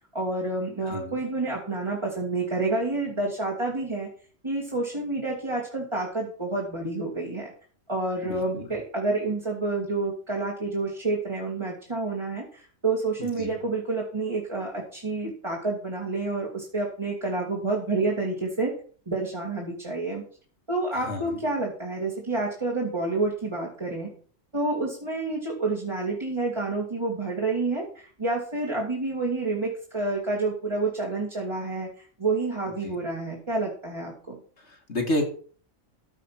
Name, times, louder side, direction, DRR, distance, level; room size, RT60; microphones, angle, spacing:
voice 1, 0.1-4.1 4.4-7.5 7.9-18.7 19.1-20.2 20.7-24.1 24.5-31.9 32.2-34.4, right 3 dB, 20° right, -3 dB, 2.5 m, -29 dB
voice 2, 0.8-1.1 8.2-8.7 13.2-13.6 21.0-21.4 32.8-32.9 34.6-35.2, left 1 dB, 55° left, 3 dB, 2.1 m, -31 dB
14.5 x 5.3 x 5.9 m, 0.43 s
omnidirectional pair, 1.4 m